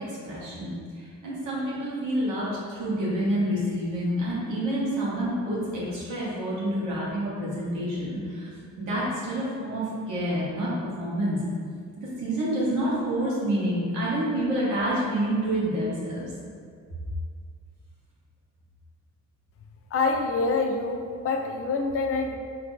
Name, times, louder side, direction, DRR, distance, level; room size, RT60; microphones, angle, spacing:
voice 1, 0.0-8.5 8.8-10.7 11.0-11.4 12.0-16.3, right 1 dB, 85° right, -7 dB, 1.2 m, -28 dB
voice 2, 19.9-22.4, left 3 dB, 50° left, 4 dB, 0.4 m, -26 dB
3.6 x 2.8 x 2.6 m, 2.1 s
cardioid pair, 90°, 30 cm